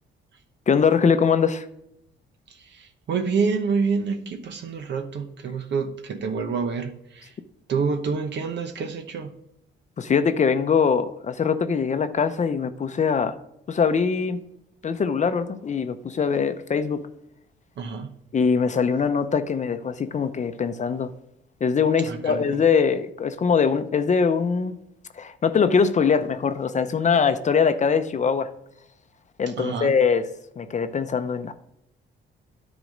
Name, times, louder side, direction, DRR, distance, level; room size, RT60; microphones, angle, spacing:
voice 1, 0.7-1.7 10.0-13.3 13.7-14.4 14.8-17.0 18.3-21.1 21.6-24.8 25.2-28.5 29.4-30.3 30.6-31.5, left 6 dB, 35° left, 0.6 m, -22 dB
voice 2, 2.7-7.3 7.7-9.3 17.8-18.1 22.1-22.6 29.5-29.9, right 5 dB, 65° right, 0.9 m, -27 dB
10.5 x 4.1 x 5.2 m
cardioid pair, 90°, 20 cm